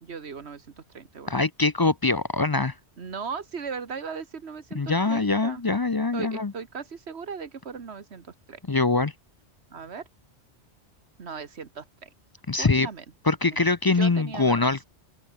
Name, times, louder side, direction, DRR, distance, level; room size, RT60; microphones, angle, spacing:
voice 1, 0.0-1.3 3.0-5.6 6.1-8.6 9.7-10.1 11.2-12.1 12.6-13.0 13.9-14.7, right 5 dB, 70° right, 1.7 m, -37 dB
voice 2, 1.3-2.7 4.7-6.5 8.7-9.1 12.5-12.9 13.3-14.8, left 3 dB, 30° left, 0.4 m, -23 dB
omnidirectional pair, 1.1 m